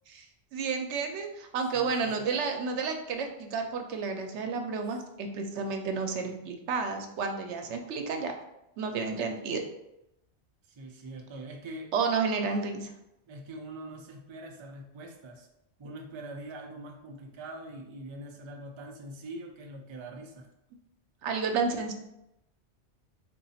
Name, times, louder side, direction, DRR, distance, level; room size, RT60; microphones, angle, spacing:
voice 1, 0.5-8.3 8.8-9.6 11.9-12.9 21.2-21.9, right 4 dB, 85° right, 4 dB, 0.9 m, -31 dB
voice 2, 1.7-2.1 10.7-11.9 13.3-15.5 15.8-20.5, right 1 dB, 45° right, 2 dB, 0.4 m, -43 dB
3.7 x 2.4 x 4.1 m, 0.87 s
omnidirectional pair, 1.2 m